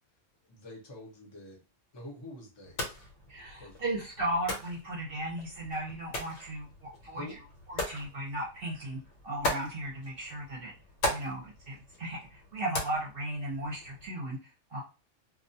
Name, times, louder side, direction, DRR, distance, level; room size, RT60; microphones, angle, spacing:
voice 1, 0.5-1.6 1.9-2.8 3.6-3.8 7.1-7.4, left 1 dB, 25° left, 0 dB, 0.6 m, -46 dB
sound 1, 2.6-14.1, left 1 dB, 70° left, 1.0 m, -39 dB
voice 2, 3.3-7.3 7.7-9.0 9.2-10.7 11.1-14.8, right 1 dB, 55° right, -3 dB, 0.8 m, -36 dB
2.3 x 2.2 x 2.6 m, 0.32 s
omnidirectional pair, 1.3 m